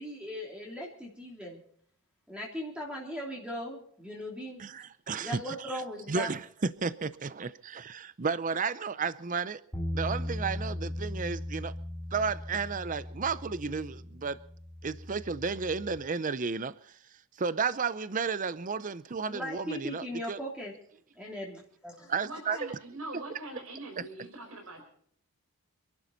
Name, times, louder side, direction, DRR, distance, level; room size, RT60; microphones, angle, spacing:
voice 1, 0.0-1.6 2.3-4.6 5.2-6.3 19.3-20.7 21.2-22.1, equal, 5° right, 3.1 m, -38 dB
voice 2, 4.6-5.8 6.1-9.6 9.9-11.7 12.1-14.4 14.8-16.7 17.4-20.4 22.1-22.6 24.0-24.1, right 5 dB, 35° right, 0.5 m, -33 dB
sound 1, 9.7-16.0, left 1 dB, 15° left, 4.1 m, -38 dB
voice 3, 22.2-24.8, right 2 dB, 70° right, 4.6 m, -43 dB
27.0 x 11.5 x 4.0 m
head